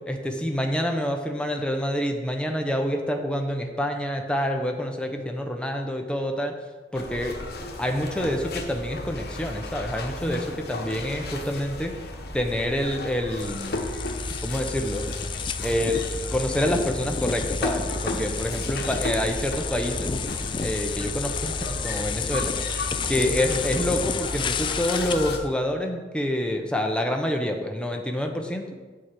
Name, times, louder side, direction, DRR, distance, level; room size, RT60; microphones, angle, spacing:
voice 1, 0.1-6.5 6.9-7.4 7.8-11.9 12.3-13.8 14.4-15.1 15.6-20.1 20.6-22.5 23.1-28.7, equal, 5° left, 3 dB, 0.9 m, -27 dB
sound 1, 6.9-25.4, left 1 dB, 60° left, 1.2 m, -33 dB
sound 2, 13.4-25.4, left 6 dB, 30° left, 0.4 m, -32 dB
9.2 x 4.8 x 7.7 m, 1.4 s
head